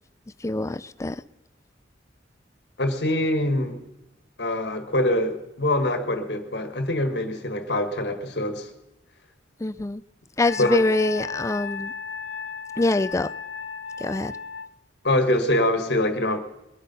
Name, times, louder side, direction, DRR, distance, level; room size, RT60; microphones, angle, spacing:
voice 1, 0.4-1.2 9.6-10.0 10.4-11.9 12.8-13.3 14.0-14.3, left 2 dB, 15° left, 14 dB, 0.4 m, -24 dB
voice 2, 2.8-3.8 4.4-8.7 10.6-10.8 15.0-16.4, left 1 dB, 60° left, 7 dB, 1.7 m, -24 dB
Wind instrument woodwind instrument, 10.4-14.7, left 5 dB, 80° left, 0.8 m, -34 dB
21.5 x 8.3 x 5.6 m, 0.97 s
head